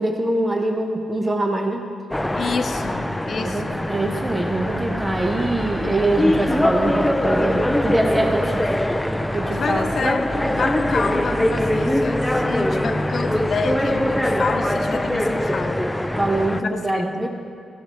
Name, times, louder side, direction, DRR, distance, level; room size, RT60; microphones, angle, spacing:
voice 1, 0.0-1.9 3.4-8.9 9.3-9.9 16.1-17.3, right 1 dB, 25° right, 3 dB, 1.1 m, -24 dB
sound 1, 2.1-16.6, left 1 dB, 10° left, 0.6 m, -22 dB
voice 2, 2.3-3.9 9.5-15.8 16.5-16.6 16.9-17.3, left 5 dB, 60° left, 8 dB, 0.8 m, -28 dB
14.0 x 11.5 x 3.1 m, 2.5 s
supercardioid pair, 50°, 0 cm